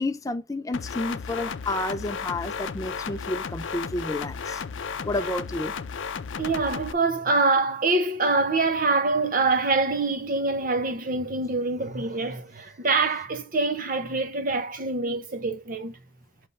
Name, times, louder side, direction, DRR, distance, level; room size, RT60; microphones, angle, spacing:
voice 1, 0.0-5.8, left 2 dB, 15° left, 0.4 m, -31 dB
sound 1, 0.7-6.9, left 6 dB, 70° left, 0.5 m, -34 dB
voice 2, 6.4-15.9, right 3 dB, 45° right, 0.8 m, -25 dB
7.0 x 3.2 x 5.2 m
head